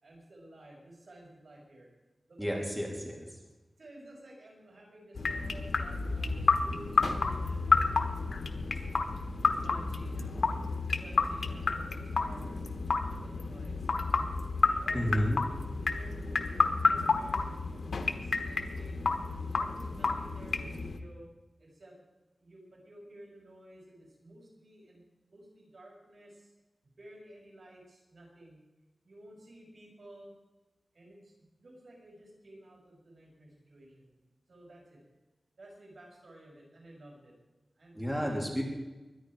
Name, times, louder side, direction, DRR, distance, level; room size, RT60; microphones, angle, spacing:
voice 1, 0.0-1.9 2.3-2.6 3.8-8.9 9.5-10.3 10.8-12.6 13.1-13.7 14.6-15.2 15.9-19.0 19.4-21.3 21.8-21.9 22.4-25.0 25.3-26.3 27.0-27.8 28.1-28.6 29.0-30.3 31.0-31.2 31.6-33.9 34.5-35.0 35.6-37.3 37.8-38.0 38.3-38.4, right 1 dB, 70° right, -2 dB, 6.2 m, -53 dB
voice 2, 2.4-3.2 14.9-15.4 37.9-38.6, equal, 5° right, -1 dB, 3.2 m, -31 dB
sound 1, 5.2-21.0, left 4 dB, 85° left, 1.1 m, -30 dB
23.0 x 10.5 x 4.9 m, 1.1 s
wide cardioid pair, 85°, 0 cm